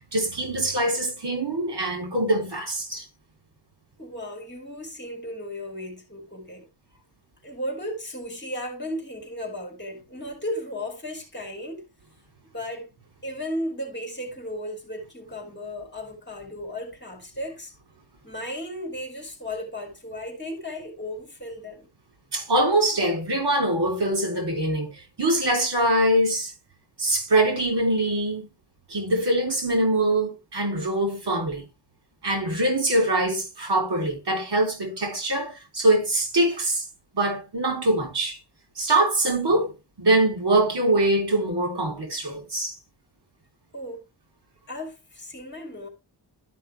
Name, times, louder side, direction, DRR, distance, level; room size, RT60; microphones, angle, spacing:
voice 1, 0.0-3.0 22.3-26.5 27.0-28.5 28.9-31.7 32.2-36.8 37.1-38.4 38.8-42.7, right 1 dB, 65° right, 3.8 m, -23 dB
voice 2, 4.0-6.7 7.4-11.8 12.5-12.9 13.2-17.7 18.2-21.9 43.7-44.1 44.7-45.9, left 1 dB, 25° left, 3.0 m, -35 dB
12.5 x 5.6 x 3.4 m
wide cardioid pair, 165°, 42 cm